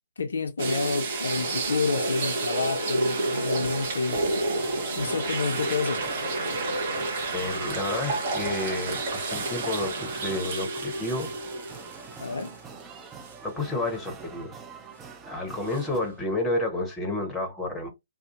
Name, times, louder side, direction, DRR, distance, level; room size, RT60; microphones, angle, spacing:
voice 1, 0.2-4.2 4.9-6.0 12.2-12.6, left 4 dB, 60° left, 0.4 m, -29 dB
sound 1, 0.6-12.8 13.2-13.3 15.7-15.8, right 2 dB, 45° right, 0.9 m, -30 dB
sound 2, 4.4-16.0, right 5 dB, 15° right, 0.4 m, -45 dB
voice 2, 7.3-11.3 13.4-14.6 15.2-17.9, left 2 dB, 10° left, 0.8 m, -30 dB
2.5 x 2.4 x 2.5 m
figure-of-eight pair, 125°, 0 cm